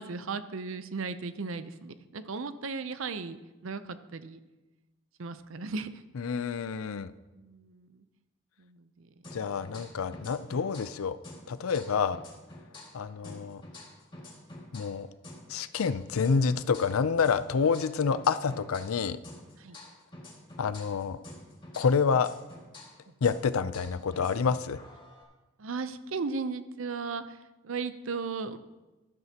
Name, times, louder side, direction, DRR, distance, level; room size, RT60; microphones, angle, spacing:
voice 1, 0.0-4.4 5.2-6.0 7.3-8.0 8.6-9.1 9.7-9.9 11.9-12.0 19.6-19.8 25.6-27.4 27.6-28.6, right 4 dB, 75° right, 12 dB, 0.6 m, -36 dB
voice 2, 6.2-7.1 9.3-11.2 11.5-12.2 12.9-13.6 14.7-15.1 15.5-19.2 20.6-21.2 21.8-22.3 23.2-24.8, left 5 dB, 85° left, 14 dB, 0.5 m, -28 dB
sound 1, 9.2-11.0 11.2-15.0 15.2-19.0 19.2-23.0 23.2-25.2, left 1 dB, 25° left, 2.1 m, -48 dB
13.0 x 12.5 x 2.9 m, 1.1 s
head